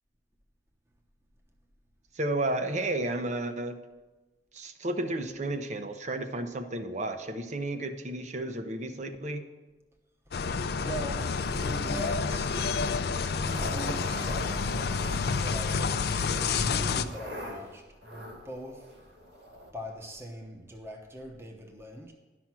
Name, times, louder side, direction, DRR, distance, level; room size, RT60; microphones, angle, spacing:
voice 1, 2.1-3.8 4.5-9.5, right 2 dB, 40° right, 8 dB, 0.7 m, -32 dB
sound 1, 10.3-17.0, left 5 dB, 60° left, 0.5 m, -29 dB
voice 2, 10.8-12.6 13.2-14.8 15.4-18.8 19.7-22.1, equal, 15° right, 3 dB, 1.0 m, -42 dB
sound 2, 11.2-19.7, equal, 80° right, 2.0 m, -44 dB
11.5 x 6.0 x 6.0 m, 1.2 s
head